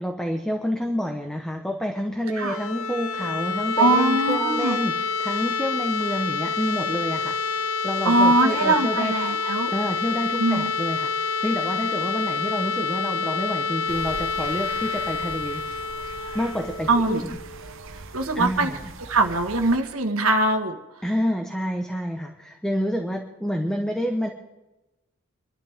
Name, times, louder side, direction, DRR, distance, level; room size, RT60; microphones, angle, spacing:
voice 1, 0.0-7.4 7.8-9.1 9.7-15.6 16.3-17.4 18.4-18.8 21.0-24.3, equal, 5° left, 3 dB, 1.1 m, -28 dB
sound 1, 2.2-18.0, left 4 dB, 80° left, 0.7 m, -28 dB
voice 2, 3.8-4.8 8.1-9.7 10.4-10.7 16.9-17.2 18.1-18.7 19.1-20.8, right 2 dB, 80° right, 5 dB, 1.7 m, -21 dB
sound 2, 13.9-19.8, right 3 dB, 60° right, 1.1 m, -41 dB
26.0 x 12.5 x 3.7 m, 1.0 s
head